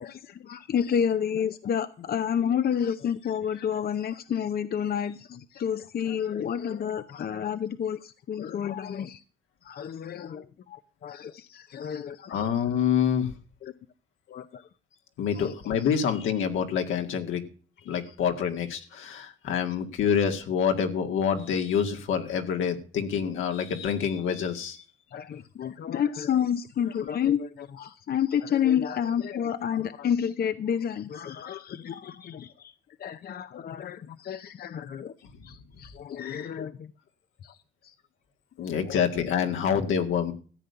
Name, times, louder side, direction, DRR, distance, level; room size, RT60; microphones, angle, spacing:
voice 1, 0.0-9.2 9.6-12.5 13.6-13.7 14.3-14.7 15.3-15.9 18.1-18.2 25.1-32.7 33.0-35.1 35.4-36.9 37.4-37.9 38.9-39.0, left 8 dB, 50° left, 11 dB, 0.7 m, -30 dB
voice 2, 12.3-13.3 15.2-17.4 17.9-24.8 36.2-36.3 38.6-40.3, left 7 dB, 80° left, 5 dB, 2.0 m, -27 dB
14.0 x 8.2 x 6.8 m, 0.40 s
cardioid pair, 90°, 20 cm